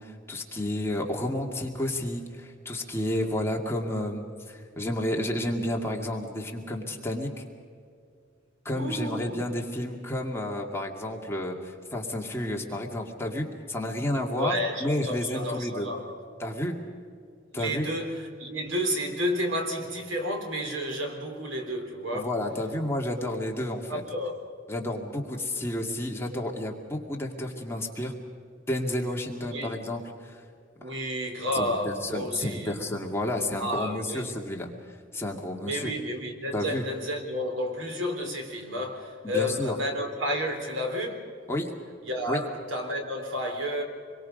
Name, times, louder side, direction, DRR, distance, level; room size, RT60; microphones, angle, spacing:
voice 1, 0.0-7.3 8.6-14.6 14.8-15.9 16.4-16.8 17.5-17.9 22.1-24.0 24.7-28.1 28.7-30.4 31.5-34.7 35.1-35.9 36.5-36.8 39.2-39.8 41.5-41.7 42.3-42.4, left 1 dB, 15° left, 2.2 m, -31 dB
voice 2, 8.7-9.5 14.3-16.2 17.5-22.4 23.9-24.4 29.4-29.8 30.8-32.8 33.6-34.3 35.6-41.3 42.0-43.8, equal, 75° right, 3.8 m, -31 dB
27.0 x 22.5 x 5.3 m
head